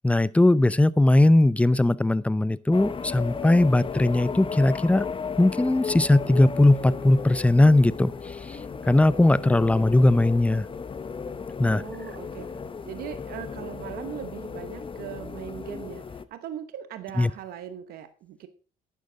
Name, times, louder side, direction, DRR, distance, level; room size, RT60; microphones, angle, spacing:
voice 1, 0.0-5.1 5.4-8.6 8.9-10.7 11.6-11.8 17.2-17.3, left 2 dB, 10° left, 19 dB, 0.5 m, -19 dB
sound 1, 2.7-16.2, left 5 dB, 35° left, 0.9 m, -35 dB
sound 2, 4.5-14.0, left 5 dB, 80° left, 3.2 m, -56 dB
voice 2, 11.6-12.5 12.8-18.5, right 10 dB, 85° right, 11 dB, 0.9 m, -39 dB
12.0 x 9.4 x 3.8 m, 0.37 s
cardioid pair, 80°, 15 cm